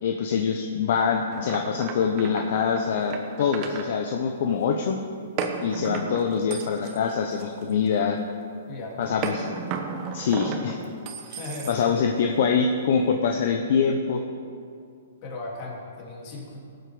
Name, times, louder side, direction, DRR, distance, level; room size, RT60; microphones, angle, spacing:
voice 1, 0.0-5.0 5.6-8.2 9.0-9.4 9.7-9.8 10.1-10.8 11.7-14.2, left 6 dB, 60° left, 4 dB, 0.9 m, -24 dB
sound 1, 1.3-3.9 5.4-8.0 9.2-12.1, right 5 dB, 35° right, 1.3 m, -34 dB
voice 2, 8.7-9.2 11.3-12.1 15.2-16.6, left 2 dB, 35° left, -2 dB, 3.1 m, -37 dB
18.5 x 8.0 x 5.0 m, 2.4 s
hypercardioid pair, 140°, 0 cm